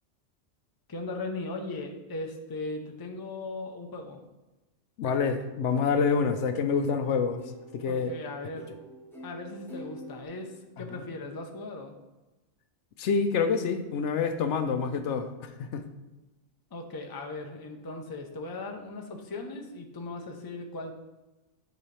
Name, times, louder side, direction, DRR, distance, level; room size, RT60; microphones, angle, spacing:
voice 1, 0.9-4.2 7.9-8.7 9.2-11.9 16.7-20.9, left 2 dB, 25° left, 3 dB, 0.5 m, -38 dB
voice 2, 5.0-7.4 7.7-8.1 10.9-11.1 13.0-15.8, left 5 dB, 75° left, 8 dB, 0.9 m, -27 dB
sound 1, 5.1-10.3, equal, ahead, 1.1 m, -46 dB
10.0 x 4.0 x 3.3 m, 1.1 s
omnidirectional pair, 1.3 m